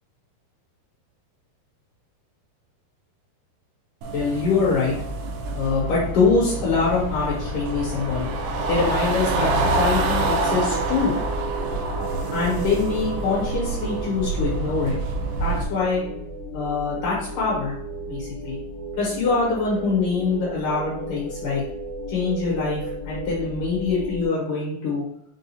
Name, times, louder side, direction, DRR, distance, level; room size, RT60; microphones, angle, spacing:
sound 1, 4.0-15.6, right 2 dB, 90° right, 2.6 m, -27 dB
voice 1, 4.1-5.0 5.5-8.3 8.7-11.2 12.3-15.0 15.4-16.0 16.5-17.8 18.1-18.6 19.0-21.6 22.1-25.0, left 4 dB, 65° left, -6 dB, 2.4 m, -24 dB
sound 2, 6.8-24.3, equal, 90° left, 1.1 m, -34 dB
6.1 x 2.5 x 2.8 m, 0.74 s
omnidirectional pair, 4.4 m